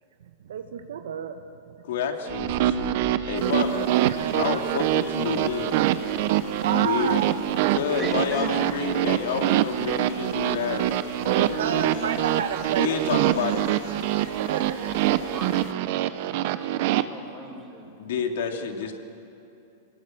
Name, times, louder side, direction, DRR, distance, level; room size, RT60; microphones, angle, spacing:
voice 1, 0.4-1.7 4.0-4.6 6.2-7.8 11.3-13.6 14.1-15.4 16.0-16.3 16.6-17.0, right 8 dB, 85° right, 7 dB, 1.1 m, -33 dB
voice 2, 1.8-2.9 3.3-3.8 4.3-5.8 6.7-7.2 7.7-12.1 12.8-13.6 18.0-19.0, left 7 dB, 70° left, 3 dB, 2.8 m, -29 dB
sound 1, 2.3-7.9, left 1 dB, 20° left, 3.0 m, -46 dB
sound 2, 2.3-17.0, right 13 dB, 50° right, 0.9 m, -25 dB
sound 3, 3.4-15.7, left 8 dB, 50° left, 1.9 m, -46 dB
voice 3, 8.0-8.7 15.2-17.8, right 1 dB, 5° right, -4 dB, 4.0 m, -38 dB
26.0 x 19.5 x 7.8 m, 2.7 s
supercardioid pair, 155°, 0 cm